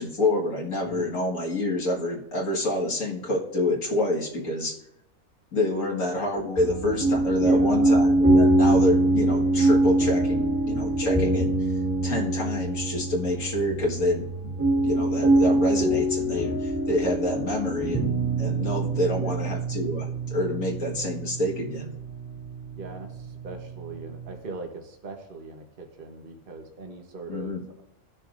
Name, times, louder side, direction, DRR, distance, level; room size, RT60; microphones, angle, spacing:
voice 1, 0.0-4.7 5.5-11.5 12.0-14.5 14.8-18.1 18.4-21.9 27.3-27.6, left 1 dB, 90° left, -3 dB, 2.2 m, -27 dB
sound 1, 6.6-24.4, right 1 dB, 15° right, 1.8 m, -24 dB
voice 2, 7.3-8.1 19.1-19.5 22.8-27.8, right 3 dB, 45° right, 3 dB, 1.3 m, -39 dB
18.0 x 6.6 x 2.6 m, 0.81 s
omnidirectional pair, 1.3 m